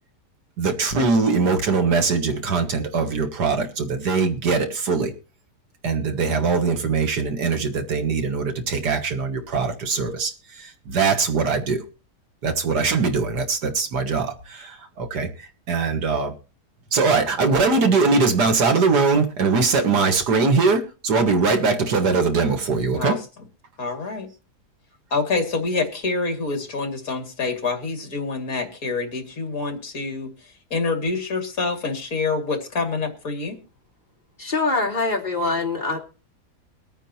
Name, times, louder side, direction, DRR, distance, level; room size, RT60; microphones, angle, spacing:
voice 1, 0.6-5.1 5.8-10.3 10.6-11.8 12.4-15.3 15.7-16.3 16.9-23.2, right 4 dB, 70° right, 6 dB, 2.1 m, -21 dB
voice 2, 23.8-24.3 25.1-30.3 30.7-33.6, left 3 dB, 55° left, 5 dB, 2.8 m, -26 dB
voice 3, 34.4-36.0, left 3 dB, 30° left, 0 dB, 2.7 m, -23 dB
23.0 x 9.1 x 2.8 m, 0.34 s
omnidirectional pair, 1.8 m